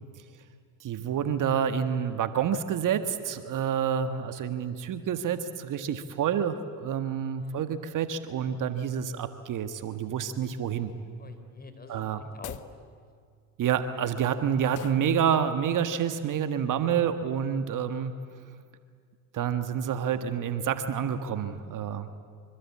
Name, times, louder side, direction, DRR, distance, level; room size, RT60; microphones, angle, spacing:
voice 1, 0.8-10.9 11.9-12.2 13.6-18.1 19.3-22.1, right 8 dB, 45° right, 9 dB, 1.7 m, -28 dB
voice 2, 7.3-7.7 11.2-12.6 13.0-13.1 16.9-17.1, left 4 dB, 20° left, 8 dB, 3.8 m, -47 dB
sound 1, 12.3-12.8 14.7-15.1, left 12 dB, 45° left, 1.1 m, -42 dB
26.0 x 25.0 x 8.6 m, 2.1 s
supercardioid pair, 90°, 43 cm